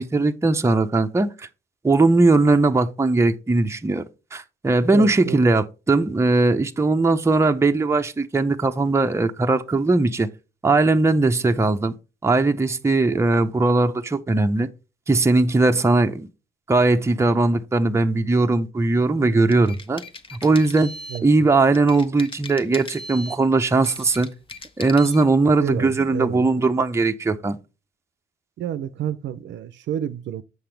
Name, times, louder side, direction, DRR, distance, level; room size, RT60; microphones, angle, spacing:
voice 1, 0.0-1.5 1.8-4.0 4.3-10.3 10.6-11.9 12.2-14.7 15.1-16.3 16.7-20.0 20.3-20.9 21.2-24.3 24.8-27.6, right 3 dB, 15° right, 0.7 m, -19 dB
voice 2, 4.9-5.4 21.1-21.5 25.6-26.6 28.6-30.4, right 10 dB, 65° right, 0.6 m, -30 dB
sound 1, 19.3-21.3 21.7-23.4 23.7-25.3, left 2 dB, 25° left, 1.0 m, -39 dB
7.8 x 5.8 x 3.3 m
cardioid pair, 90°, 20 cm